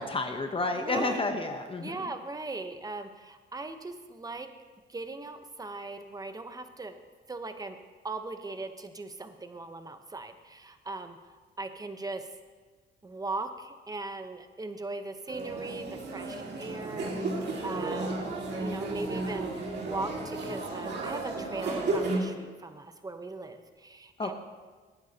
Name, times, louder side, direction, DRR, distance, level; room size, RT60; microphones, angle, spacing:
voice 1, 0.0-2.0 24.2-24.3, left 2 dB, 25° left, 5 dB, 1.0 m, -30 dB
voice 2, 0.7-1.3 1.8-4.5 4.9-7.0 7.3-7.8 8.0-11.2 11.6-12.2 13.0-15.9 16.1-17.1 17.6-18.3 18.6-24.3, right 3 dB, 20° right, 8 dB, 0.9 m, -39 dB
sound 1, 15.3-22.2, right 2 dB, 60° right, 2.2 m, -33 dB
18.5 x 9.3 x 2.9 m, 1.4 s
cardioid pair, 90°, 20 cm